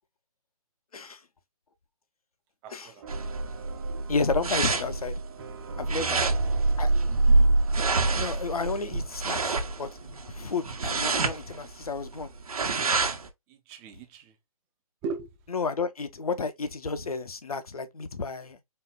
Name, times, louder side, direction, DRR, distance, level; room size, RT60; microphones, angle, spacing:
voice 1, 2.6-3.3 5.9-6.2 13.5-14.4 15.0-15.4, right 4 dB, 15° right, 0.5 m, -39 dB
sound 1, 3.0-10.1, right 7 dB, 45° right, 1.2 m, -43 dB
sound 2, 3.1-13.3, right 3 dB, 75° right, 1.0 m, -26 dB
voice 2, 4.1-5.1 5.8-6.2 6.8-6.9 8.1-9.9 10.3-12.3 15.5-18.6, left 4 dB, 75° left, 0.8 m, -31 dB
4.4 x 2.4 x 3.6 m
figure-of-eight pair, 145°, 19 cm